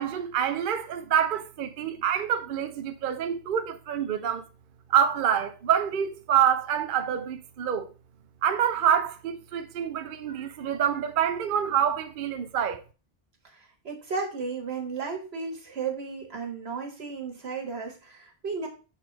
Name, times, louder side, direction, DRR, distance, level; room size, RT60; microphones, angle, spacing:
voice 1, 0.0-4.4 4.9-7.9 8.4-12.8, right 9 dB, 60° right, 0.7 m, -26 dB
voice 2, 13.4-18.7, right 5 dB, 85° right, 1.8 m, -34 dB
6.9 x 4.0 x 4.6 m
omnidirectional pair, 1.0 m